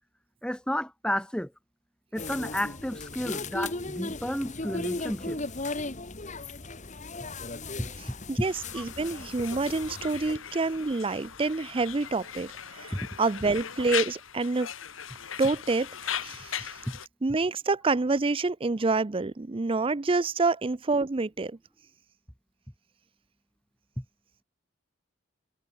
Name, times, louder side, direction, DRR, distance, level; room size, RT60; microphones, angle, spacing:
voice 1, 0.4-1.5 2.1-5.4 7.8-7.9 8.8-8.9 12.9-13.0 16.9-17.0 24.0-24.1, equal, 5° left, 1.9 m, -32 dB
sound 1, 2.2-10.4, left 2 dB, 40° left, 2.3 m, -37 dB
voice 2, 8.0-14.7 15.4-16.8 17.2-21.6, right 3 dB, 30° right, 0.5 m, -28 dB
Conversation, 8.4-17.1, left 9 dB, 85° left, 1.6 m, -38 dB
head